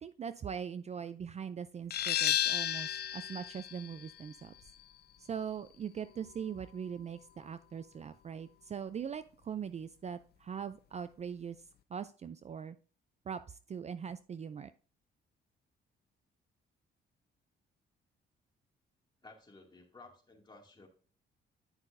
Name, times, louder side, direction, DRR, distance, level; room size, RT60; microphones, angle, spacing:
voice 1, 0.0-4.5 5.2-11.6 11.9-12.8 13.3-14.7, right 7 dB, 35° right, 13 dB, 0.4 m, -41 dB
sound 1, 1.9-7.3, left 11 dB, 55° left, 0.5 m, -35 dB
voice 2, 19.2-20.9, left 3 dB, 20° left, 0 dB, 2.3 m, -55 dB
10.5 x 5.7 x 2.6 m, 0.39 s
cardioid pair, 90°, 20 cm